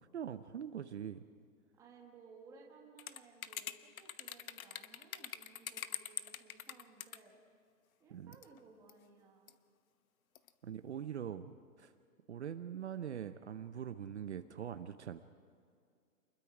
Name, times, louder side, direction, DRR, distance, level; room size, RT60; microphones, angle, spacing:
voice 1, 0.1-1.2 8.1-8.3 10.6-11.9 12.3-15.2, right 9 dB, 50° right, 10 dB, 0.8 m, -43 dB
voice 2, 1.8-7.4 8.0-9.5, right 4 dB, 5° right, 0 dB, 1.4 m, -60 dB
sound 1, 3.0-7.2 8.3-8.6 8.9-9.0 9.5-9.6 10.3-10.5, left 9 dB, 70° left, 1.1 m, -44 dB
28.5 x 21.5 x 4.9 m, 2.3 s
hypercardioid pair, 165°, 43 cm